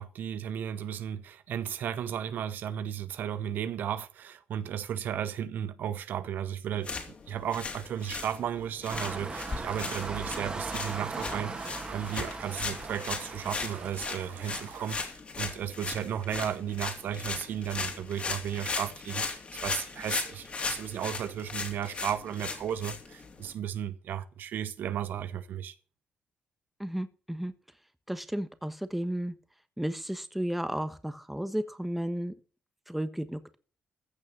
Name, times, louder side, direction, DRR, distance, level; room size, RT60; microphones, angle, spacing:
voice 1, 0.0-25.7, right 9 dB, 70° right, 0.9 m, -34 dB
sound 1, 6.7-23.5, left 4 dB, 40° left, 3.2 m, -38 dB
sound 2, 8.9-13.9, right 3 dB, 25° right, 2.4 m, -38 dB
sound 3, 9.1-15.1, right 7 dB, 85° right, 4.2 m, -48 dB
voice 2, 26.8-27.5 28.1-29.3 29.8-32.3 32.9-33.6, right 1 dB, 5° right, 1.2 m, -33 dB
14.5 x 6.5 x 6.5 m
cardioid pair, 100°, 3 cm